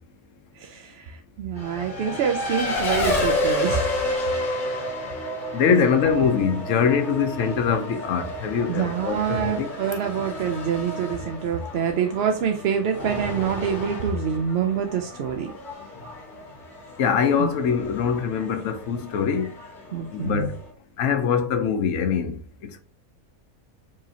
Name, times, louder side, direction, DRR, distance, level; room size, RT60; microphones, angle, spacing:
voice 1, 0.6-4.1 5.7-5.8 8.7-15.5 17.4-17.5 19.9-20.5, right 7 dB, 65° right, 0.6 m, -26 dB
Race car auto racing, 1.6-20.7, left 1 dB, 40° left, 1.0 m, -31 dB
voice 2, 5.5-9.7 17.0-19.5 20.1-20.6 21.0-22.8, left 7 dB, 70° left, 1.0 m, -23 dB
4.7 x 2.8 x 2.8 m
omnidirectional pair, 1.5 m